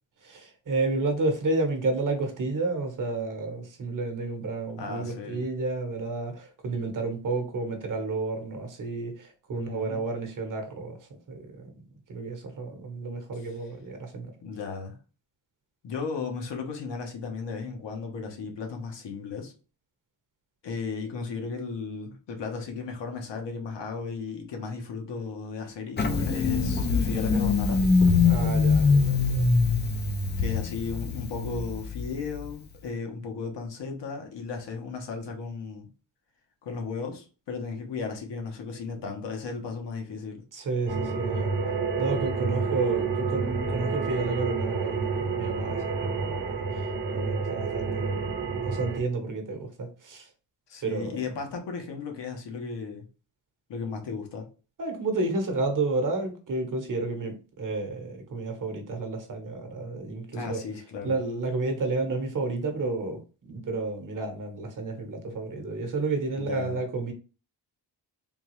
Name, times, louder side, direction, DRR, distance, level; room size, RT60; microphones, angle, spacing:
voice 1, 0.2-11.7 12.1-14.3 28.2-29.6 40.5-41.5 42.0-46.6 47.1-50.3 50.8-51.2 54.8-60.6 61.0-67.1, right 3 dB, 45° right, 1.0 m, -31 dB
voice 2, 4.8-5.5 9.5-10.0 13.4-13.5 14.4-15.0 15.8-19.5 20.6-27.8 30.4-35.9 36.6-40.4 50.7-53.1 53.7-54.5 60.3-61.2 66.4-66.8, left 5 dB, 70° left, 1.1 m, -35 dB
Engine starting, 26.0-32.5, left 4 dB, 25° left, 0.4 m, -23 dB
sound 1, 40.9-49.0, right 4 dB, 25° right, 0.7 m, -29 dB
3.7 x 2.3 x 3.1 m
cardioid pair, 115°, 45 cm